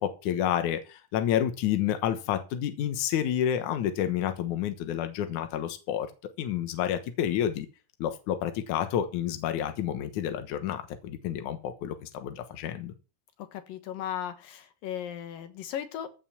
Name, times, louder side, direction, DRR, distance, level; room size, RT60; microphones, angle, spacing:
voice 1, 0.0-6.1 6.4-7.7 8.0-12.9, left 10 dB, 70° left, 2.5 m, -29 dB
voice 2, 13.4-16.1, left 10 dB, 90° left, 3.1 m, -36 dB
15.0 x 5.4 x 7.2 m
omnidirectional pair, 3.8 m